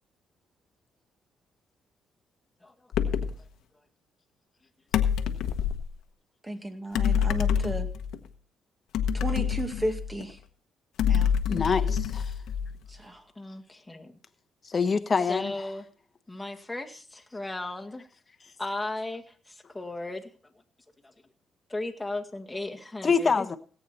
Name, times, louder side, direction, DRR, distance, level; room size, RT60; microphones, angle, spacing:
voice 1, 2.6-3.2 13.4-14.2 15.3-15.9 16.3-18.1 18.6-20.5 21.0-21.1 21.7-23.5, left 2 dB, 10° left, 2 dB, 1.9 m, -36 dB
sound 1, 2.9-3.4 4.9-5.9 6.9-8.2 8.9-10.3 11.0-12.9, left 8 dB, 85° left, 1.1 m, -26 dB
voice 2, 6.4-7.9 9.1-10.4 11.0-11.3 12.9-13.2, right 1 dB, 15° right, 6 dB, 2.1 m, -33 dB
voice 3, 11.5-12.2 14.7-15.5 23.0-23.6, left 5 dB, 35° left, 10 dB, 1.2 m, -25 dB
17.5 x 8.5 x 4.3 m, 0.41 s
cardioid pair, 90°, 0 cm